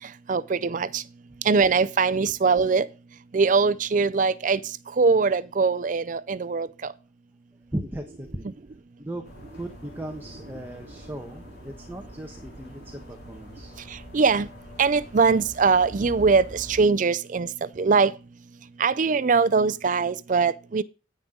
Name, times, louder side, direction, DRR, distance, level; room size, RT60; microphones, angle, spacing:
voice 1, 0.3-1.0 1.4-2.9 3.3-4.6 5.0-6.9 14.1-14.5 14.8-17.5 17.8-18.1 18.8-20.8, right 4 dB, 45° right, 0.4 m, -22 dB
voice 2, 7.7-8.5 9.0-9.3 9.5-13.8, right 1 dB, 10° right, 1.1 m, -37 dB
sound 1, 9.2-16.8, equal, 55° left, 4.2 m, -45 dB
9.7 x 9.4 x 3.8 m
head